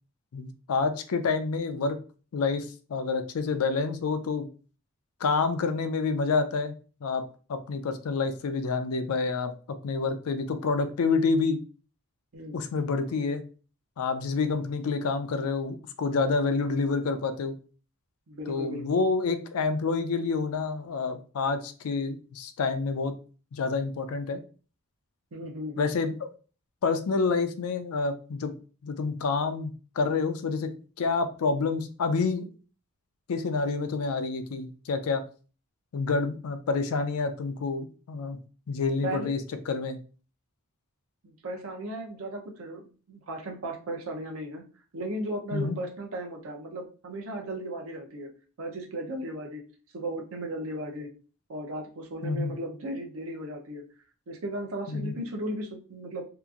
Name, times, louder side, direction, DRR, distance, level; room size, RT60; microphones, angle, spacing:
voice 1, 0.3-2.0 2.3-4.5 5.2-6.7 7.0-7.2 7.5-9.5 9.8-11.6 12.5-13.4 14.0-17.5 18.5-23.1 23.5-24.4 25.8-26.1 26.8-28.5 28.8-29.7 30.0-30.7 31.0-32.5 33.3-35.2 35.9-38.4 38.7-39.4 39.7-40.0 45.5-45.8 52.2-52.5 54.9-55.1, left 4 dB, 85° left, 9 dB, 0.4 m, -28 dB
voice 2, 14.4-14.7 18.3-19.0 25.3-25.9 39.0-39.3 41.2-44.6 44.9-48.3 48.6-49.6 49.9-51.1 51.5-53.8 54.3-56.2, right 1 dB, 75° right, 2 dB, 0.6 m, -36 dB
2.8 x 2.5 x 2.4 m, 0.37 s
head